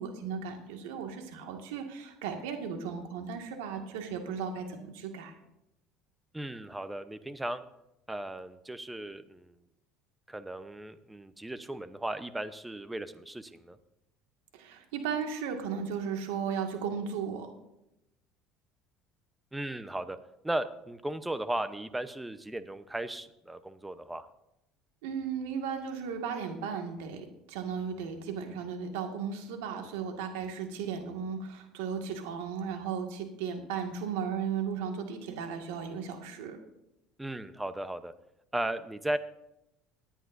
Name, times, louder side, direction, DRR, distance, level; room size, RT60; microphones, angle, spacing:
voice 1, 0.0-5.3 14.5-17.5 25.0-36.6, right 6 dB, 85° right, 4 dB, 1.9 m, -35 dB
voice 2, 6.3-7.6 8.1-9.5 10.3-13.8 19.5-20.2 20.4-24.3 37.2-38.1 38.5-39.2, right 1 dB, 10° right, 11 dB, 0.8 m, -36 dB
19.0 x 10.0 x 2.7 m, 0.86 s
supercardioid pair, 100°, 0 cm